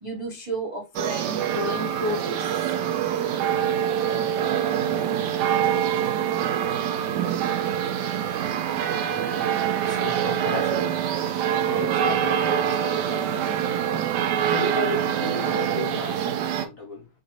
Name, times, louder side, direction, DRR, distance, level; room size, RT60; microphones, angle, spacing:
voice 1, 0.0-2.7 7.3-7.5 7.8-8.0 8.3-8.4 8.8-8.9 9.3-9.4 9.8-9.9, equal, 30° right, 0.6 m, -33 dB
sound 1, 0.9-16.6, right 9 dB, 70° right, 1.1 m, -25 dB
voice 2, 9.8-11.0 11.6-13.6 14.4-17.1, left 3 dB, 50° left, 1.3 m, -35 dB
4.0 x 2.6 x 3.0 m
omnidirectional pair, 2.1 m